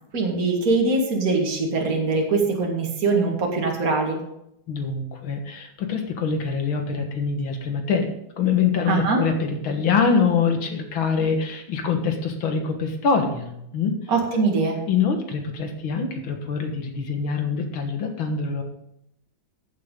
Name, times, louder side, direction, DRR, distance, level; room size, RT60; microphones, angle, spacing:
voice 1, 0.1-4.2 8.9-9.2 14.1-14.8, right 3 dB, 45° right, 0 dB, 2.4 m, -22 dB
voice 2, 4.7-14.0 14.9-18.6, left 5 dB, 85° left, 5 dB, 2.3 m, -24 dB
15.0 x 8.4 x 3.8 m, 0.78 s
omnidirectional pair, 2.2 m